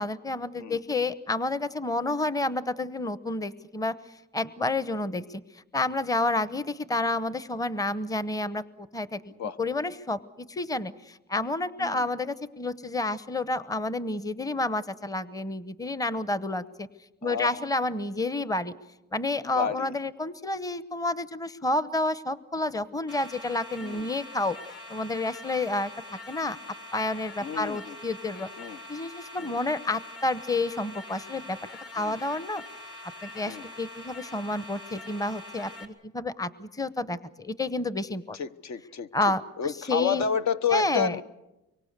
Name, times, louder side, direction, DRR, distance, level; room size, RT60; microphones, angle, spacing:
voice 1, 0.0-4.0 4.3-5.4 5.7-9.2 9.6-16.9 17.2-18.7 19.1-24.6 24.9-26.6 26.9-28.5 28.9-31.6 31.9-32.6 33.2-38.4 39.1-40.2 40.7-41.2, left 2 dB, 10° left, 15 dB, 0.9 m, -30 dB
voice 2, 19.5-19.9 23.8-24.1 27.4-27.9 28.6-28.8 29.4-29.5 32.0-32.2 33.5-33.7 38.4-39.1 39.6-41.2, left 6 dB, 65° left, 11 dB, 1.1 m, -30 dB
sound 1, 23.1-35.8, left 1 dB, 50° left, 3.8 m, -44 dB
24.5 x 24.0 x 6.7 m, 0.97 s
cardioid pair, 90°, 30 cm